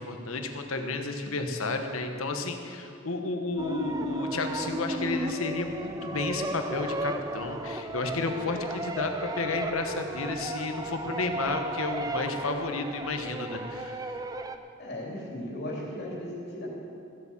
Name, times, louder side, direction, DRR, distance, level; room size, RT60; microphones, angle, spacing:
voice 1, 0.0-14.0, left 3 dB, 75° left, 5 dB, 1.2 m, -32 dB
sound 1, 3.6-14.6, right 2 dB, 15° right, 0.4 m, -35 dB
voice 2, 14.8-16.7, left 1 dB, 50° left, -3 dB, 2.9 m, -36 dB
15.0 x 8.4 x 7.2 m, 2.6 s
head